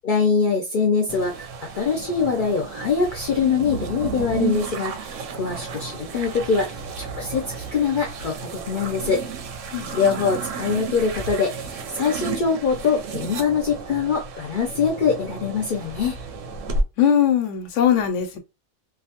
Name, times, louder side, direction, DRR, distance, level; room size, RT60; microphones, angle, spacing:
voice 1, 0.0-1.5 1.7-9.2 9.9-16.2, left 5 dB, 55° left, 0.6 m, -23 dB
sound 1, 1.1-16.8, right 4 dB, 90° right, 0.9 m, -32 dB
voice 2, 9.7-10.2 17.0-18.4, left 9 dB, 80° left, 1.0 m, -21 dB
2.6 x 2.2 x 2.8 m
omnidirectional pair, 1.2 m